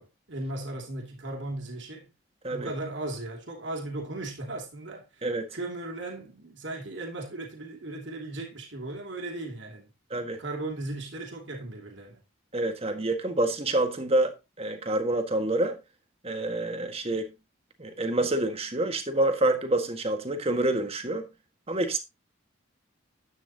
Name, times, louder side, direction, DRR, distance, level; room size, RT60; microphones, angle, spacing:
voice 1, 0.0-2.1 2.5-5.2 5.5-9.9 10.4-12.2, right 2 dB, 60° right, 2.7 m, -37 dB
voice 2, 12.5-15.8 16.2-17.3 17.8-21.3 21.7-22.0, right 2 dB, 30° right, 1.7 m, -27 dB
11.5 x 9.2 x 2.9 m
head